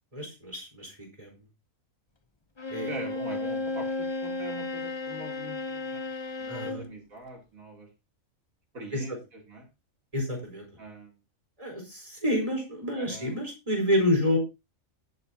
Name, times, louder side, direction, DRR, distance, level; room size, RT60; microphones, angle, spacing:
voice 1, 0.1-0.9 1.2-1.3 2.7-2.9 6.5-6.8 8.9-9.0 10.1-10.7 11.6-14.4, left 1 dB, 25° right, 1 dB, 4.8 m, -28 dB
Bowed string instrument, 2.6-6.9, left 2 dB, 25° left, 0.8 m, -33 dB
voice 2, 2.9-6.1 6.4-7.9 8.7-9.7 10.8-11.1 13.0-13.3, right 1 dB, 80° right, 1 dB, 3.7 m, -42 dB
17.5 x 7.9 x 2.9 m, 0.25 s
omnidirectional pair, 1.4 m